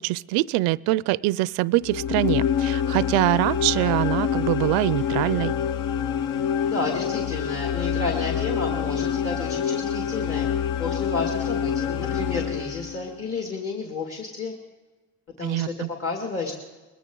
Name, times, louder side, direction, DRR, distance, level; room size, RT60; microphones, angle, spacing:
voice 1, 0.0-5.5 15.4-15.9, right 19 dB, 70° right, 22 dB, 0.5 m, -24 dB
sound 1, 1.8-13.1, left 8 dB, 55° left, 0.7 m, -26 dB
voice 2, 6.6-10.5 10.8-14.5 15.4-15.7 16.0-16.6, left 3 dB, 35° left, 1 dB, 2.2 m, -31 dB
20.5 x 16.0 x 3.8 m, 1.2 s
supercardioid pair, 110°, 39 cm